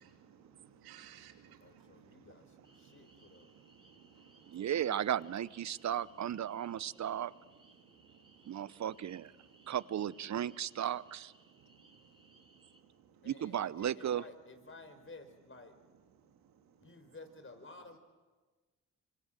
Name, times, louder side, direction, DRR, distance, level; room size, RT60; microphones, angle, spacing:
voice 1, 0.0-2.9 3.2-4.2 4.5-4.6 6.0-6.2 6.7-6.8 8.7-8.8, right 9 dB, 80° right, 5 dB, 2.9 m, -59 dB
voice 2, 1.6-3.5 4.5-4.6 13.2-15.7 16.8-18.0, left 3 dB, 35° left, 8 dB, 5.2 m, -54 dB
sound 1, 2.6-12.8, right 1 dB, 15° right, 5.0 m, -66 dB
voice 3, 4.5-7.3 8.4-9.3 9.7-11.3 13.2-14.2, right 10 dB, 50° right, 19 dB, 0.8 m, -35 dB
26.0 x 24.5 x 7.7 m, 1.3 s
hypercardioid pair, 50°, 37 cm